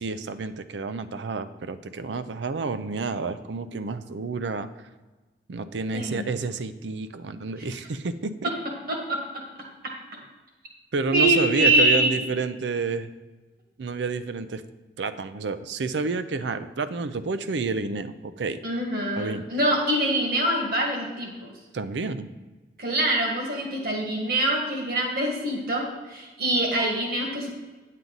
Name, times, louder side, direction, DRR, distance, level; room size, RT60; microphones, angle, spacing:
voice 1, 0.0-4.7 5.5-8.5 10.9-13.1 13.8-14.6 15.0-18.6 19.2-19.4 21.7-22.3, right 4 dB, 85° right, 11 dB, 0.5 m, -29 dB
voice 2, 5.9-6.3 7.6-7.7 8.9-9.2 11.1-12.2 18.6-21.5 22.8-27.5, right 1 dB, 55° right, 0 dB, 1.8 m, -24 dB
9.4 x 7.5 x 3.9 m, 1.2 s
head